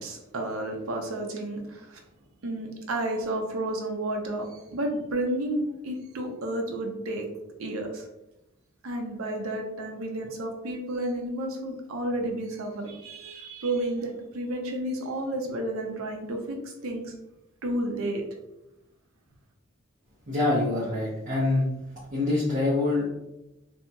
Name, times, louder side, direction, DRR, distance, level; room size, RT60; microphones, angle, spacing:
voice 1, 0.0-2.0 2.4-7.3 7.6-8.1 8.8-17.1 17.6-18.2, right 1 dB, 85° right, 2 dB, 0.6 m, -31 dB
voice 2, 20.3-21.7 22.1-23.1, left 2 dB, 40° right, -9 dB, 0.9 m, -25 dB
2.7 x 2.7 x 2.2 m, 0.91 s
head